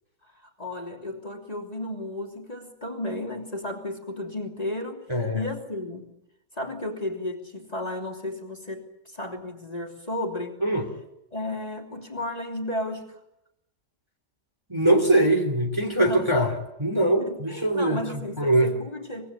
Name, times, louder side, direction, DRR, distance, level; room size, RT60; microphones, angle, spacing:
voice 1, 0.2-5.1 5.3-6.1 6.5-10.6 11.3-13.2 16.0-16.5 17.2-19.3, left 1 dB, 20° left, 2 dB, 3.2 m, -33 dB
voice 2, 5.1-5.4 10.6-10.9 14.7-16.5 16.8-18.0 18.4-18.7, right 1 dB, 15° right, 3 dB, 3.0 m, -22 dB
24.5 x 21.5 x 8.4 m, 0.84 s
omnidirectional pair, 1.8 m